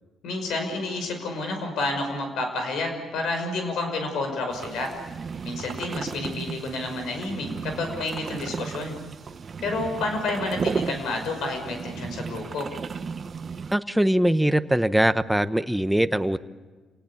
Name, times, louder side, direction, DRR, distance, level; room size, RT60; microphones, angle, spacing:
voice 1, 0.2-4.9 5.4-8.9 9.6-12.7, left 2 dB, 80° left, 5 dB, 5.7 m, -30 dB
sound 1, 4.5-13.8, right 5 dB, 45° right, 0.9 m, -34 dB
voice 2, 13.7-16.4, right 1 dB, 5° right, 11 dB, 1.0 m, -22 dB
28.5 x 18.5 x 8.7 m, 1.4 s
cardioid pair, 90°, 0 cm